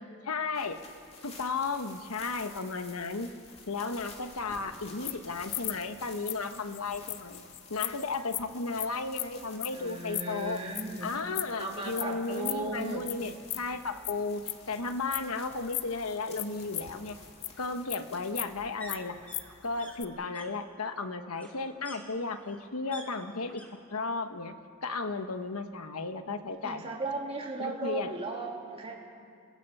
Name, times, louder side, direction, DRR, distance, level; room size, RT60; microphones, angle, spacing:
voice 1, 0.2-0.8 1.2-3.3 3.7-7.4 7.7-10.6 11.0-17.2 17.6-19.2 19.6-23.6 23.9-24.5 24.8-26.9 27.6-28.1, left 3 dB, 75° left, 8 dB, 1.2 m, -34 dB
sound 1, 0.5-20.3, left 3 dB, 30° left, 2.7 m, -52 dB
sound 2, 4.4-11.6 12.0-12.2 12.4-13.1 13.4-15.9 16.3-17.6 17.9-19.5 19.8-20.1, left 16 dB, 55° left, 0.6 m, -37 dB
voice 2, 9.7-11.1 11.6-13.1 26.6-29.0, right 2 dB, 25° right, -1 dB, 2.9 m, -36 dB
sound 3, 17.1-23.7 23.9-24.5 24.8-25.8 26.1-26.2, equal, 5° left, 2.8 m, -52 dB
28.0 x 21.0 x 5.5 m, 2.3 s
head